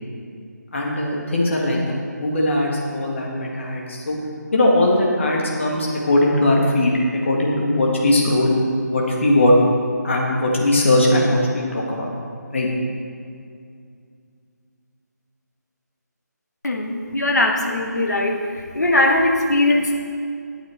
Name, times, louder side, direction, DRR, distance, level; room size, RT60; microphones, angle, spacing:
voice 1, 0.7-4.2 4.5-6.9 7.2-8.6 8.9-9.6 10.0-12.1 12.5-12.7, left 1 dB, 40° left, -2 dB, 1.8 m, -19 dB
voice 2, 16.6-18.3 18.7-20.0, left 2 dB, 65° left, 2 dB, 1.5 m, -19 dB
11.0 x 8.7 x 4.5 m, 2.3 s
figure-of-eight pair, 155°, 10 cm